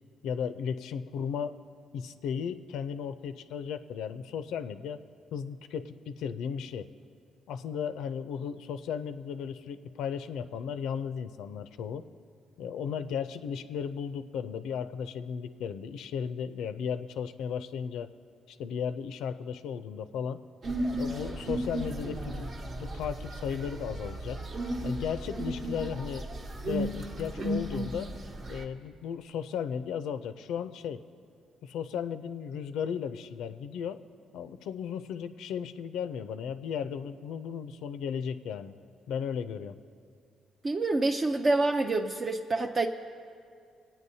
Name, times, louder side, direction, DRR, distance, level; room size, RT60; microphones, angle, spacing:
voice 1, 0.2-1.6 1.9-5.0 5.3-6.9 7.5-12.0 12.6-18.1 18.5-20.4 21.0-24.4 24.8-26.3 26.6-28.1 28.5-31.0 31.6-34.0 34.3-38.7 39.1-39.8, left 7 dB, 85° left, 11 dB, 0.4 m, -35 dB
sound 1, 20.6-28.6, right 1 dB, 55° right, 1.1 m, -35 dB
voice 2, 40.6-42.9, right 2 dB, 35° right, 3 dB, 0.4 m, -27 dB
24.5 x 9.0 x 2.7 m, 2.3 s
cardioid pair, 90°, 0 cm